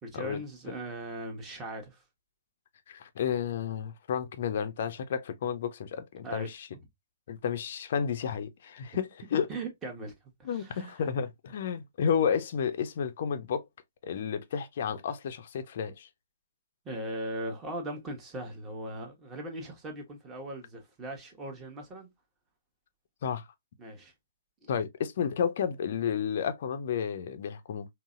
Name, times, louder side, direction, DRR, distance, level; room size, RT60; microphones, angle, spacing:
voice 1, 0.0-2.0 6.2-6.5 9.5-10.1 10.4-10.9 16.8-22.1 23.8-24.1 24.6-24.7, right 1 dB, 15° right, 1.0 m, -39 dB
voice 2, 2.9-6.7 7.3-9.5 10.4-13.6 14.0-16.1 23.2-23.5 24.7-27.9, left 7 dB, 50° left, 0.5 m, -31 dB
3.8 x 2.0 x 2.4 m
figure-of-eight pair, 125°, 0 cm